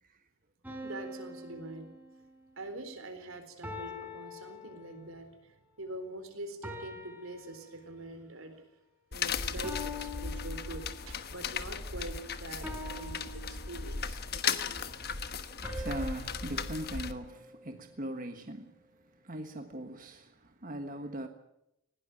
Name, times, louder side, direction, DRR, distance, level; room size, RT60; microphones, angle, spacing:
sound 1, 0.6-2.6 3.6-5.3 6.6-8.2 9.6-11.3 12.6-14.2 15.6-18.0, left 2 dB, 10° right, 4.5 m, -45 dB
voice 1, 0.8-1.9 2.6-8.6 9.1-14.9, right 2 dB, 80° right, 4.0 m, -44 dB
sound 2, 9.1-17.1, left 6 dB, 50° left, 1.3 m, -36 dB
voice 2, 14.3-21.3, right 1 dB, 40° right, 1.4 m, -41 dB
20.0 x 18.0 x 9.3 m
head